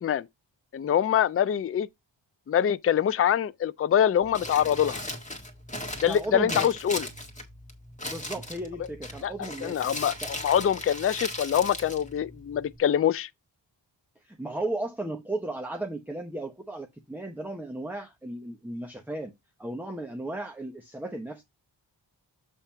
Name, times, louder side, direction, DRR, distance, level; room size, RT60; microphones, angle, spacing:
voice 1, 0.7-1.9 2.5-5.0 6.0-7.1 9.2-9.3 9.6-13.3, left 9 dB, 35° left, 0.4 m, -24 dB
Crumpling crinkling, 4.2-12.8, left 1 dB, 15° left, 1.7 m, -38 dB
voice 2, 6.1-6.8 8.0-9.9 10.2-10.3 14.2-19.3 19.6-21.4, right 1 dB, 5° right, 0.8 m, -35 dB
7.4 x 3.3 x 5.6 m
wide cardioid pair, 100°, 45 cm